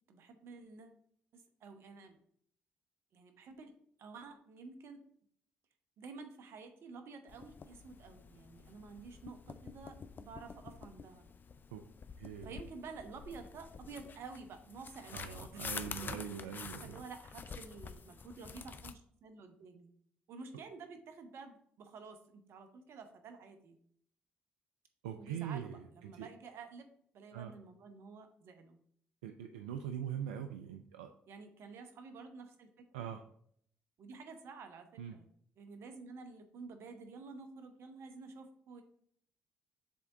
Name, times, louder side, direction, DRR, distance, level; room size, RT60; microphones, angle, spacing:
voice 1, 0.1-1.0 1.3-2.2 3.1-3.7 4.0-5.0 6.0-11.3 12.4-15.6 16.0-16.2 16.8-19.9 20.3-23.8 25.2-26.9 27.1-28.8 31.3-33.1 34.0-35.3 35.6-38.8, right 4 dB, 65° right, 7 dB, 1.0 m, -51 dB
sound 1, 7.3-18.9, left 5 dB, 45° left, 0.5 m, -48 dB
voice 2, 12.2-12.6 15.1-17.0 25.0-26.3 27.3-27.5 29.2-31.1 32.9-33.2 35.0-35.2, right 9 dB, 90° right, 6 dB, 0.3 m, -42 dB
7.6 x 3.5 x 3.9 m, 0.65 s
hypercardioid pair, 50°, 5 cm